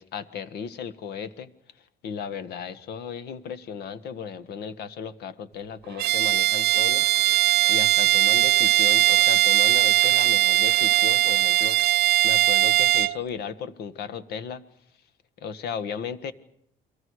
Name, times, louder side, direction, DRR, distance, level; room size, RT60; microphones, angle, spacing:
voice 1, 0.0-1.5 2.0-7.1 7.7-11.8 12.2-14.6 15.4-16.3, left 7 dB, 70° left, 14 dB, 1.5 m, -35 dB
Bowed string instrument, 6.0-13.2, right 14 dB, 70° right, 0.8 m, -20 dB
29.5 x 22.5 x 4.8 m, 0.74 s
cardioid pair, 110°, 17 cm